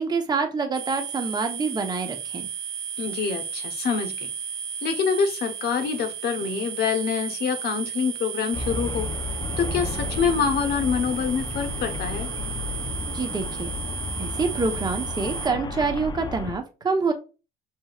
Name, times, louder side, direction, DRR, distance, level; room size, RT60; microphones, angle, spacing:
voice 1, 0.0-2.5 13.1-13.7 14.2-17.1, right 4 dB, 25° right, 5 dB, 0.9 m, -26 dB
sound 1, 0.7-15.5, right 7 dB, 55° right, 0.7 m, -34 dB
voice 2, 3.0-4.3 4.8-9.1 9.6-12.3, left 6 dB, 70° left, 5 dB, 1.1 m, -26 dB
Traffic noise roadway noise, 8.5-16.6, left 3 dB, 25° left, 0.4 m, -32 dB
5.3 x 3.0 x 2.4 m, 0.32 s
cardioid pair, 110°, 17 cm